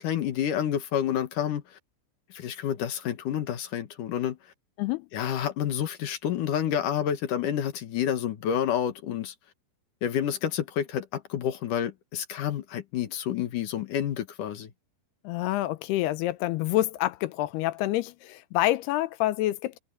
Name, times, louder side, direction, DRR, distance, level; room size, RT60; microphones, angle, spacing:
voice 1, 0.0-1.8 2.3-4.4 5.1-9.3 10.0-14.7, left 9 dB, 60° left, 2.4 m, -29 dB
voice 2, 15.2-19.8, left 16 dB, 75° left, 2.5 m, -27 dB
omnidirectional pair, 5.1 m